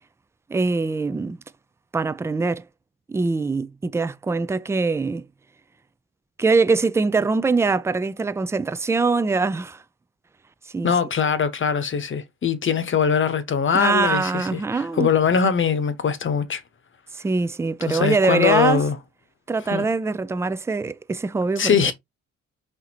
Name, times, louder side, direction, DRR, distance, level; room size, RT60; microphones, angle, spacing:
voice 1, 0.5-1.4 1.9-2.6 3.1-5.2 6.4-9.8 10.7-10.9 13.7-15.1 17.2-18.8 19.5-21.9, right 4 dB, 10° right, 0.3 m, -23 dB
voice 2, 10.8-16.6 17.8-19.0 19.7-19.9 21.6-21.9, left 6 dB, 40° left, 0.9 m, -22 dB
4.4 x 3.8 x 2.8 m
cardioid pair, 90°, 30 cm